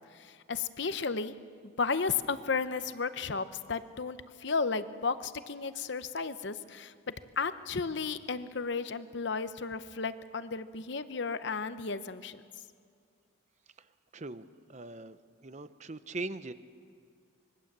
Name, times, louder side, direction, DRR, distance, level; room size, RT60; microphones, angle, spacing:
voice 1, 0.0-1.3 1.8-12.4, left 4 dB, 60° left, 12 dB, 0.8 m, -34 dB
voice 2, 14.1-16.5, right 2 dB, 35° right, 12 dB, 0.8 m, -41 dB
25.5 x 21.5 x 7.5 m, 2.2 s
head